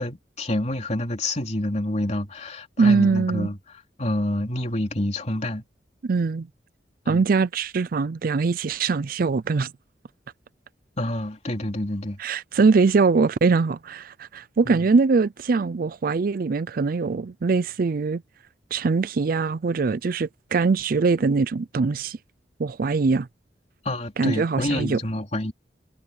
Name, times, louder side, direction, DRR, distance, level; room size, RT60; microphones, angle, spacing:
voice 1, 0.0-3.6 4.0-5.6 7.1-7.2 11.0-12.2 14.6-14.8 23.8-25.5, left 1 dB, 40° left, 3.2 m, -28 dB
voice 2, 2.8-3.5 6.0-6.5 7.1-9.7 12.2-18.2 18.7-22.2 22.6-23.3 24.2-25.0, right 4 dB, 55° right, 0.4 m, -22 dB
head